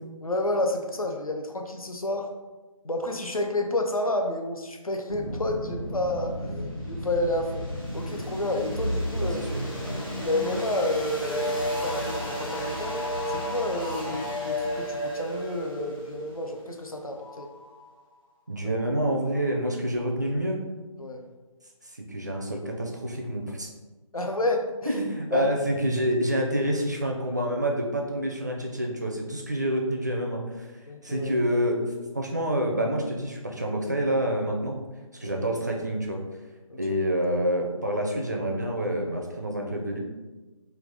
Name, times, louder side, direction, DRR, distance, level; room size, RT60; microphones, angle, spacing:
voice 1, 0.2-2.3 2.8-7.6 7.9-9.4 9.9-13.0 13.3-17.5 21.0-21.2 24.1-25.0 25.3-25.5 30.9-31.3 35.2-35.3 36.7-36.8, left 2 dB, 85° left, 3 dB, 0.6 m, -30 dB
sound 1, 5.1-17.9, equal, 40° left, 0.8 m, -32 dB
voice 2, 9.1-9.5 14.0-14.1 18.5-20.6 21.8-23.7 24.9-30.7 31.0-31.8 32.1-34.8 35.2-36.2 36.8-40.0, right 1 dB, 30° right, 0 dB, 0.4 m, -27 dB
3.3 x 2.4 x 3.7 m, 1.2 s
figure-of-eight pair, 160°, 18 cm